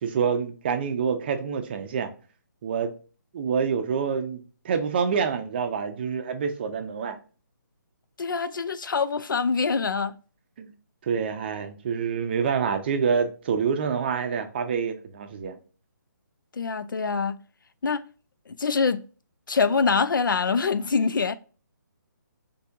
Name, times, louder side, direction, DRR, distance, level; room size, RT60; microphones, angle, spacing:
voice 1, 0.0-2.1 2.6-2.9 3.3-7.2 10.6-10.7 11.1-15.6, right 6 dB, 30° right, 0.5 m, -27 dB
voice 2, 8.2-10.1 16.5-17.4 17.8-18.0 18.5-19.0 19.5-21.3, left 5 dB, 85° left, 0.4 m, -24 dB
4.3 x 2.7 x 2.4 m
hypercardioid pair, 155°, 11 cm